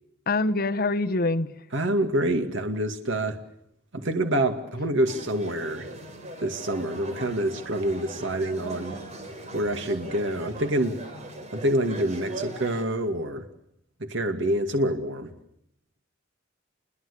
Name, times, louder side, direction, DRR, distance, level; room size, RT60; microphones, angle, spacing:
voice 1, 0.3-1.5, left 2 dB, 50° left, 1.3 m, -24 dB
voice 2, 1.7-3.4 3.9-5.9 6.4-9.0 9.5-11.0 11.5-13.5 14.0-15.3, right 1 dB, 65° right, 2.5 m, -26 dB
sound 1, 5.1-12.8, right 2 dB, 35° right, 5.4 m, -40 dB
29.0 x 22.0 x 8.5 m
head